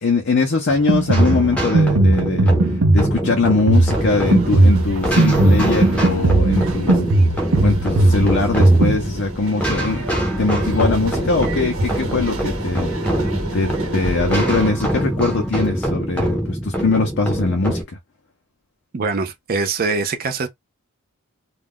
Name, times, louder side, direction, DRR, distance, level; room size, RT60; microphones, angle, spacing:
voice 1, 0.0-10.1 10.4-12.9 13.5-18.0, left 3 dB, 50° left, 0.6 m, -22 dB
Drum kit, 0.7-9.0, right 2 dB, 85° right, 0.6 m, -17 dB
sound 1, 1.1-17.8, equal, 5° left, 0.7 m, -24 dB
sound 2, 3.7-14.7, right 1 dB, 65° right, 0.9 m, -29 dB
voice 2, 18.9-20.5, right 4 dB, 40° right, 0.4 m, -23 dB
2.4 x 2.2 x 3.5 m
head